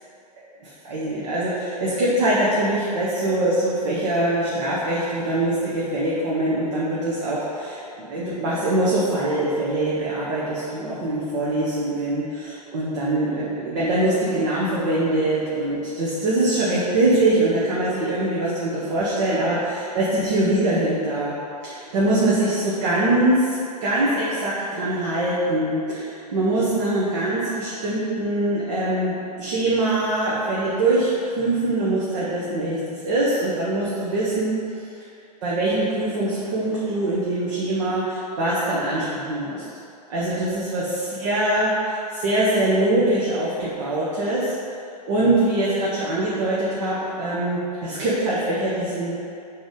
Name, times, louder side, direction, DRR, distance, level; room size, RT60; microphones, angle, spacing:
voice 1, 0.6-21.3 21.6-31.1 31.4-34.6 35.4-39.6 40.1-44.5 45.1-49.2, right 1 dB, 50° right, -8 dB, 1.3 m, -23 dB
7.8 x 3.4 x 5.1 m, 2.6 s
figure-of-eight pair, 100°, 21 cm